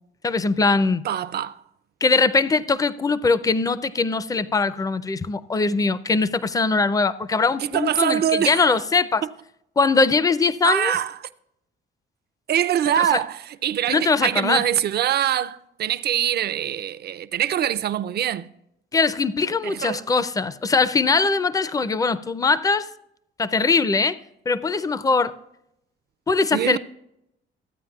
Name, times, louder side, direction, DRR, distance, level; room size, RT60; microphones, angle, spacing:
voice 1, 0.2-1.0 2.0-9.2 9.8-10.9 13.0-13.2 13.9-14.6 18.9-22.9 23.4-24.2 24.5-25.3 26.3-26.8, left 4 dB, 20° left, 0.4 m, -21 dB
voice 2, 1.0-1.6 7.6-8.8 10.6-11.2 12.5-18.5 19.6-20.0 26.5-26.8, right 10 dB, 55° right, 0.5 m, -24 dB
14.5 x 9.1 x 2.3 m
cardioid pair, 90°, 20 cm